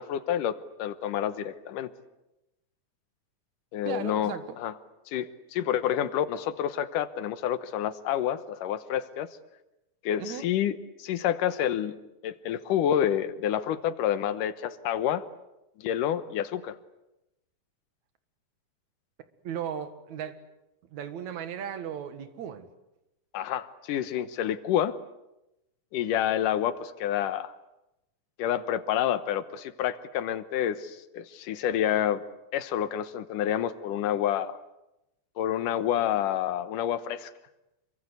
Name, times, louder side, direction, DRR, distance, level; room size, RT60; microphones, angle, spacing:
voice 1, 0.0-1.9 3.7-4.7 5.1-9.3 10.0-11.9 12.2-15.2 15.8-16.8 23.3-25.0 25.9-27.5 28.4-32.2 32.5-34.6 35.4-37.3, left 10 dB, 85° left, 13 dB, 2.7 m, -28 dB
voice 2, 3.9-4.6 10.2-10.5 19.4-20.4 20.9-22.7, right 8 dB, 65° right, 10 dB, 2.9 m, -36 dB
27.0 x 23.5 x 8.1 m, 0.92 s
omnidirectional pair, 3.6 m